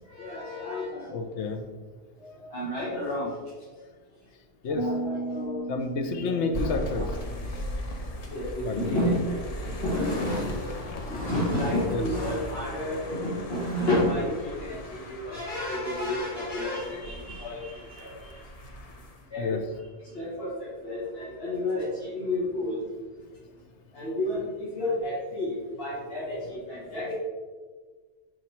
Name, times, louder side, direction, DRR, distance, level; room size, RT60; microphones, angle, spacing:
voice 1, 0.0-1.1 2.5-3.3 4.8-5.6 6.6-7.1 8.2-18.4 19.3-19.6 20.0-22.8 23.9-27.1, left 1 dB, 60° left, -10 dB, 1.8 m, -31 dB
voice 2, 1.1-1.7 2.2-2.6 4.6-5.1 5.7-7.1 8.6-8.9 11.9-12.0 19.4-19.6, left 4 dB, 80° left, 7 dB, 0.9 m, -30 dB
sound 1, 4.8-8.2, right 2 dB, 45° right, 0.4 m, -36 dB
sound 2, 6.5-19.2, left 1 dB, 40° left, 0.6 m, -38 dB
5.1 x 4.7 x 4.3 m, 1.5 s
omnidirectional pair, 1.2 m